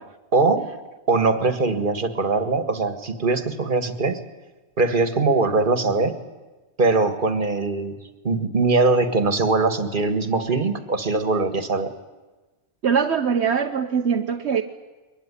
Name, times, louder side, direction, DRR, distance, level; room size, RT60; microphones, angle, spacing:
voice 1, 0.3-0.7 1.1-4.2 4.8-6.2 6.8-7.9 8.2-11.9, right 3 dB, 45° right, 10 dB, 1.9 m, -21 dB
voice 2, 12.8-14.6, right 6 dB, 70° right, 4 dB, 1.3 m, -22 dB
23.0 x 21.0 x 9.9 m, 1.2 s
omnidirectional pair, 1.2 m